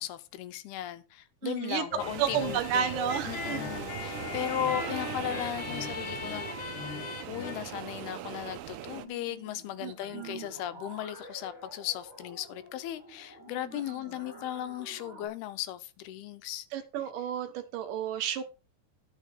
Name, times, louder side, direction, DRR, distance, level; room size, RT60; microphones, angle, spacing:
voice 1, 0.0-3.0 3.2-6.8 7.3-16.7, left 12 dB, 90° left, 2.8 m, -37 dB
voice 2, 1.4-1.9 2.2-3.6 9.8-10.4 16.7-18.4, right 9 dB, 70° right, 2.3 m, -31 dB
sound 1, 1.9-7.6, left 5 dB, 60° left, 1.4 m, -38 dB
sound 2, 2.0-9.1, right 12 dB, 85° right, 2.8 m, -40 dB
sound 3, 8.9-15.3, right 1 dB, 5° left, 6.4 m, -50 dB
12.0 x 6.3 x 5.0 m
omnidirectional pair, 4.4 m